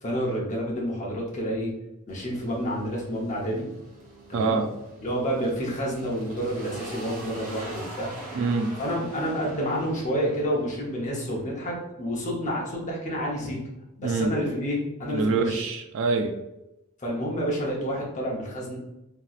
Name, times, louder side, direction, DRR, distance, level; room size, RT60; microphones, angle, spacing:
voice 1, 0.0-1.7 2.1-3.7 4.3-4.6 5.0-8.1 8.8-13.6 14.0-15.7 17.0-18.8, equal, 35° left, -3 dB, 0.8 m, -29 dB
sound 1, 2.1-11.7, right 1 dB, 35° right, 0.9 m, -44 dB
voice 2, 4.3-4.7 8.3-8.7 14.0-14.3 15.1-16.3, right 4 dB, 60° right, 6 dB, 0.3 m, -25 dB
3.0 x 2.8 x 2.4 m, 0.92 s
head